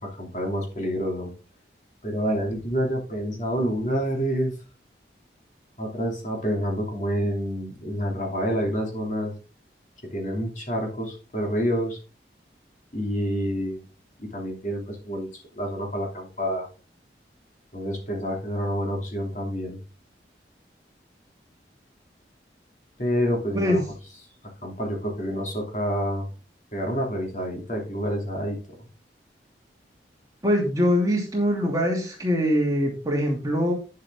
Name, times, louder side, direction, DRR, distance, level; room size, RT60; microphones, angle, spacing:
voice 1, 0.0-1.3 2.0-4.5 5.8-9.3 10.1-12.0 12.9-13.9 14.2-16.7 17.7-19.8 23.0-23.8 24.6-26.3 26.7-28.6, equal, 40° left, 0 dB, 2.8 m, -28 dB
voice 2, 30.4-33.7, equal, 20° right, -1 dB, 2.7 m, -23 dB
9.7 x 7.4 x 3.6 m, 0.34 s
head